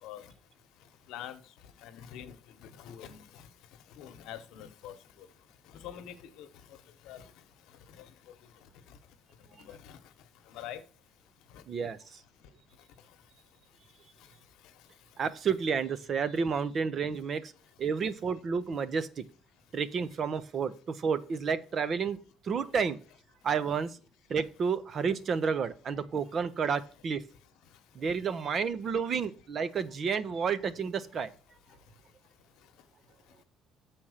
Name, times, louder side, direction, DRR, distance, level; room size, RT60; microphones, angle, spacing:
voice 1, 1.8-2.3 2.8-3.2 4.0-4.9 5.8-6.1 7.1-7.2 9.7-9.8 10.5-10.8, left 10 dB, 80° left, 9 dB, 1.0 m, -43 dB
voice 2, 11.7-12.2 15.2-17.5 17.8-19.2 19.7-22.2 22.4-23.0 23.4-24.0 24.3-27.2 27.9-31.3, right 6 dB, 35° right, 14 dB, 0.6 m, -31 dB
7.3 x 4.3 x 6.4 m, 0.39 s
cardioid pair, 155°, 0 cm